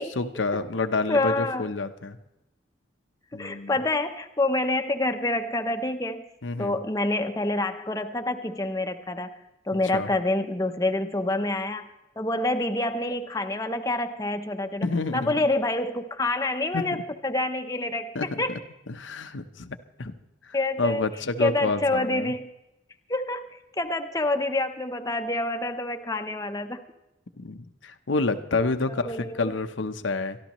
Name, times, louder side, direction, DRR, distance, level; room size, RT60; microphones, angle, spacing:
voice 1, 0.2-2.2 3.3-3.8 6.4-6.8 9.9-10.1 14.8-15.5 16.7-16.8 18.1-18.6 18.9-20.1 20.4-22.3 27.4-30.4, left 3 dB, 80° left, 9 dB, 0.8 m, -29 dB
voice 2, 1.1-1.6 3.3-6.2 6.6-9.3 9.7-11.9 12.2-14.9 15.1-18.5 20.5-21.1 21.4-22.5 23.1-26.8 28.9-29.5, left 2 dB, 20° left, 6 dB, 0.7 m, -27 dB
23.5 x 13.0 x 3.1 m, 0.91 s
head